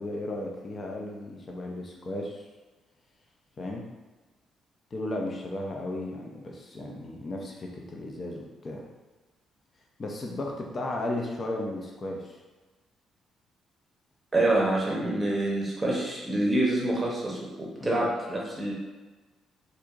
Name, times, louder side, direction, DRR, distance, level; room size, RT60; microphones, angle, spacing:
voice 1, 0.0-2.4 3.6-3.9 4.9-8.9 10.0-12.4 17.8-18.1, left 1 dB, 40° left, 0 dB, 0.5 m, -35 dB
voice 2, 14.3-18.7, right 1 dB, 20° right, -4 dB, 0.8 m, -26 dB
4.3 x 2.6 x 2.4 m, 1.2 s
cardioid pair, 90°, 0 cm